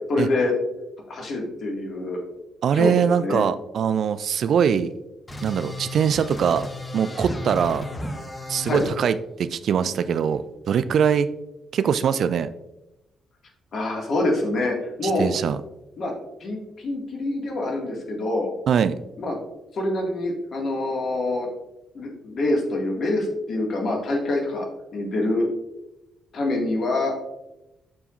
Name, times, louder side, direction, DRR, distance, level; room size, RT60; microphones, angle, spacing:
voice 1, 0.1-0.5 1.1-2.2 2.7-2.9 3.2-3.5 8.7-8.8 13.7-15.3 16.0-16.1 16.4-18.5 19.2-19.4 19.7-21.5 21.9-24.7 24.9-25.5 26.3-27.1, left 2 dB, 55° left, 1 dB, 1.9 m, -25 dB
voice 2, 2.6-4.9 5.4-6.6 6.9-7.9 8.5-11.3 11.7-12.5 15.0-15.6 18.7-19.0, right 7 dB, 60° right, 13 dB, 0.3 m, -22 dB
sound 1, 5.3-8.9, left 1 dB, 25° left, 1.3 m, -33 dB
11.5 x 4.8 x 2.5 m, 0.93 s
hypercardioid pair, 40°, 0 cm